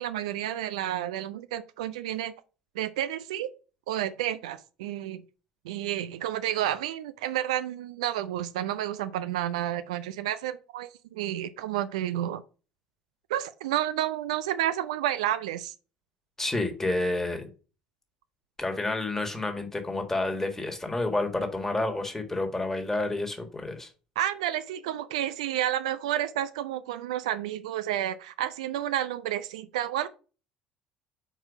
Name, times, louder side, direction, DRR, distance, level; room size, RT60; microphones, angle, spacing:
voice 1, 0.0-2.3 2.8-3.5 3.9-5.2 5.6-12.4 13.3-15.7 24.2-30.1, right 12 dB, 70° right, 0.4 m, -30 dB
voice 2, 16.4-17.5 18.6-23.9, left 2 dB, 10° left, 1.6 m, -29 dB
4.9 x 4.4 x 4.8 m
figure-of-eight pair, 60°, 4 cm